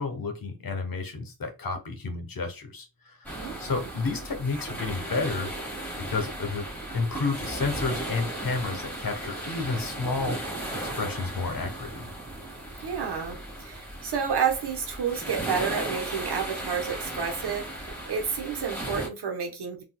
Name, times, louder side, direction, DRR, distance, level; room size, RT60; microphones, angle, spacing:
voice 1, 0.0-5.5 6.1-6.7 6.9-10.4 11.0-12.1, left 4 dB, 60° left, 1.1 m, -31 dB
sound 1, 3.2-19.1, right 1 dB, 5° left, 1.8 m, -36 dB
voice 2, 3.4-3.9 12.8-19.8, right 6 dB, 85° right, 1.1 m, -30 dB
3.8 x 2.6 x 2.3 m
cardioid pair, 75°, 39 cm